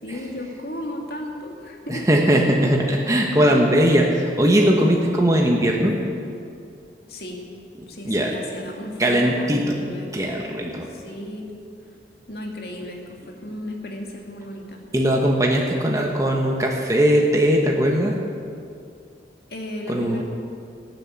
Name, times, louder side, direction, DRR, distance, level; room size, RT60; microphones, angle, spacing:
voice 1, 0.0-2.3 7.1-7.4 7.9-10.1 10.9-11.5 12.3-14.8 19.5-20.2, left 1 dB, 60° left, 0 dB, 2.3 m, -34 dB
voice 2, 1.9-6.0 8.1-8.3 9.0-9.6 10.1-10.9 14.9-18.2 19.9-20.2, equal, 20° right, 0 dB, 1.3 m, -19 dB
18.5 x 7.7 x 8.6 m, 2.4 s
head